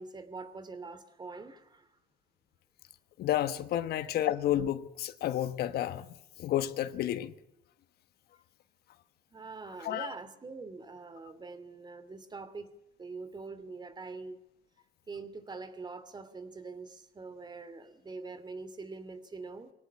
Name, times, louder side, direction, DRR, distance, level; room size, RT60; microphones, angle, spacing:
voice 1, 0.0-1.9 9.3-12.7 13.0-14.4 15.1-19.7, right 4 dB, 25° right, 2.8 m, -44 dB
voice 2, 3.2-6.0 6.4-7.3 9.8-10.1, left 12 dB, 70° left, 1.3 m, -31 dB
24.0 x 18.0 x 8.8 m
cardioid pair, 110°, 17 cm